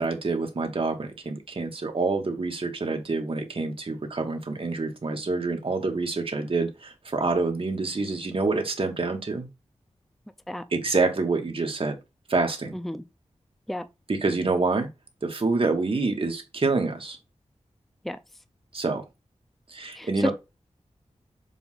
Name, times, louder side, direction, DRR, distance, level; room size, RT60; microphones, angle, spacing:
voice 1, 0.0-9.5 10.7-12.0 12.3-12.7 14.1-14.9 15.2-17.2 18.7-19.0 19.7-20.3, right 3 dB, 50° right, 1.5 m, -27 dB
voice 2, 12.7-13.0 13.7-13.8 18.0-18.2 20.0-20.3, left 1 dB, ahead, 0.5 m, -30 dB
7.0 x 2.6 x 5.7 m
wide cardioid pair, 100°, 12 cm